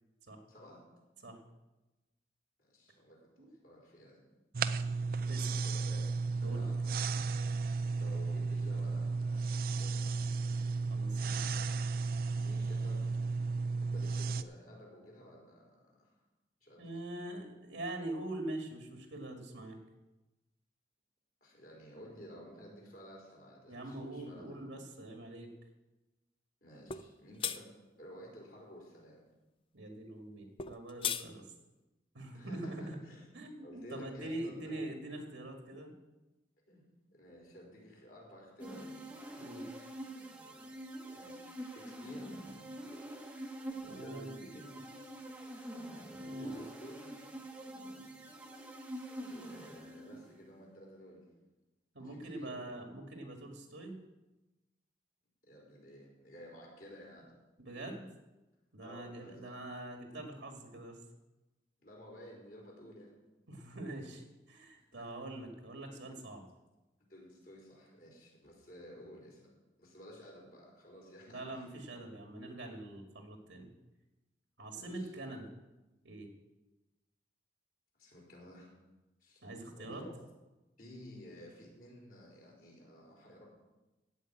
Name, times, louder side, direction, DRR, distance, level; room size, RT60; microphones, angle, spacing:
voice 1, 0.5-0.8 2.6-4.2 5.2-7.1 7.8-10.2 12.3-13.0 13.8-16.1 16.6-17.0 21.4-24.6 26.6-29.2 32.3-33.3 33.6-34.9 36.7-36.8 37.1-38.9 41.1-42.4 43.9-44.8 45.5-45.7 46.4-47.2 49.3-51.2 52.0-52.9 55.4-57.3 58.8-59.5 61.8-63.1 64.8-65.2 67.1-69.5 69.8-71.7 74.7-75.1 77.9-78.7 79.2-79.5 79.7-80.2 80.8-83.5, equal, 50° left, -3 dB, 4.5 m, -53 dB
sound 1, 4.5-14.4, right 4 dB, 50° right, 0.5 m, -34 dB
voice 2, 10.9-11.5 16.8-19.8 23.7-25.5 29.7-31.5 32.1-33.0 33.3-35.9 39.4-39.7 43.8-44.4 46.1-46.6 51.9-54.0 57.6-58.1 58.7-61.0 63.5-66.4 71.3-73.7 74.6-75.5 76.0-76.3 79.4-80.0, right 1 dB, 75° right, 2 dB, 1.9 m, -44 dB
sound 2, 26.9-27.1 27.4-27.6 30.6-31.3, left 8 dB, 30° left, 0.4 m, -35 dB
sound 3, 38.6-50.4, right 1 dB, 5° right, 1.2 m, -46 dB
15.5 x 5.3 x 8.6 m, 1.1 s
head